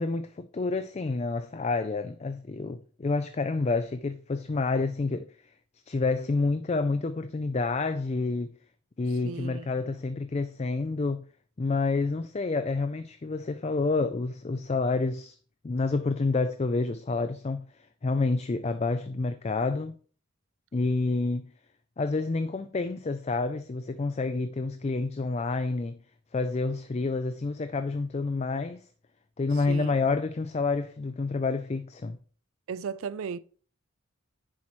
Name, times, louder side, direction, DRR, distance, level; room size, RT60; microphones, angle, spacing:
voice 1, 0.0-5.3 5.9-8.5 9.0-11.2 11.6-15.4 15.6-17.6 18.0-19.9 20.7-21.4 22.0-26.0 26.3-28.9 29.4-32.2, left 3 dB, 30° left, 0.4 m, -28 dB
voice 2, 9.2-9.7 29.7-29.9 32.7-33.4, right 6 dB, 70° right, 0.4 m, -35 dB
10.5 x 7.3 x 3.1 m
head